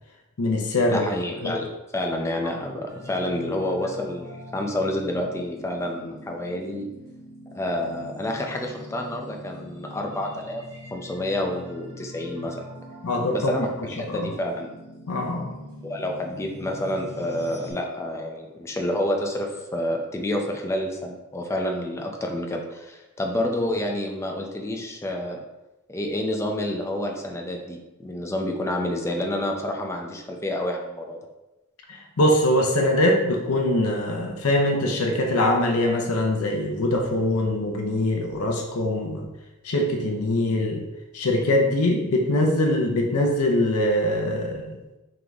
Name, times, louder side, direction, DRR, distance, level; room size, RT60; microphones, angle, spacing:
voice 1, 0.4-1.1 1.4-1.6 13.0-13.5 14.0-14.3 15.1-15.5 31.9-39.2 39.6-40.8 41.1-44.8, left 1 dB, 80° left, 1 dB, 0.6 m, -23 dB
voice 2, 0.9-6.9 7.5-10.6 10.9-12.6 13.3-14.7 15.8-25.4 25.9-31.2, left 1 dB, 15° left, 1 dB, 0.5 m, -29 dB
sound 1, 2.9-17.7, left 1 dB, 75° right, 1.1 m, -43 dB
3.8 x 3.1 x 3.5 m, 1.0 s
head